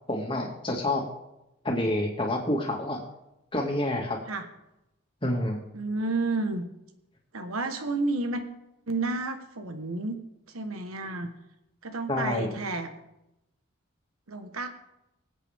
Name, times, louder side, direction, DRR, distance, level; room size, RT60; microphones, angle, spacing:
voice 1, 0.1-1.1 1.6-3.0 3.5-4.2 5.2-5.6 12.1-12.6, left 1 dB, 25° left, 0 dB, 2.1 m, -28 dB
voice 2, 5.7-6.6 7.3-8.4 8.9-10.2 10.5-11.3 11.8-12.9 14.3-14.7, right 3 dB, 90° right, 7 dB, 1.4 m, -30 dB
24.5 x 8.3 x 3.6 m, 0.89 s
head